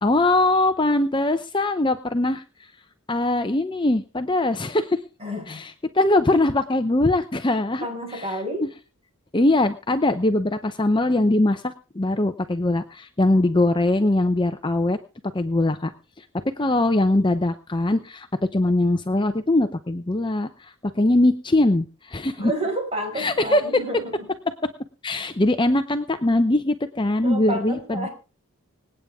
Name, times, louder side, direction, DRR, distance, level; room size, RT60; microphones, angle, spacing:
voice 1, 0.0-2.4 3.1-5.0 5.5-7.9 8.1-8.7 9.3-15.0 15.3-15.9 16.2-18.3 18.5-22.5 23.2-23.6 24.6-24.7 25.0-28.1, left 2 dB, 20° left, 8 dB, 0.7 m, -22 dB
voice 2, 5.2-5.7 7.8-8.7 22.4-24.2 27.2-28.1, right 1 dB, 25° right, 3 dB, 5.5 m, -30 dB
26.0 x 9.1 x 3.6 m, 0.33 s
head